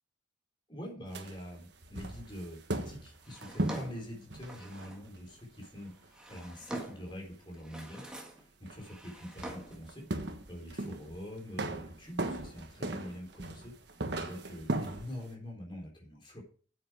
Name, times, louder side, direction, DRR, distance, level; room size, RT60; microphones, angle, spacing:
voice 1, 0.7-13.7 14.2-16.4, equal, 25° left, 0 dB, 3.6 m, -45 dB
sound 1, 1.1-6.0 6.8-6.9 7.6-7.7 8.7-8.9 9.2-11.2 11.5-15.2, right 2 dB, 60° right, 1.4 m, -37 dB
Drawer open or close, 3.2-5.1 5.9-7.2 7.5-8.5 8.8-9.9, right 1 dB, 5° right, 1.8 m, -45 dB
9.2 x 7.9 x 4.8 m, 0.42 s
head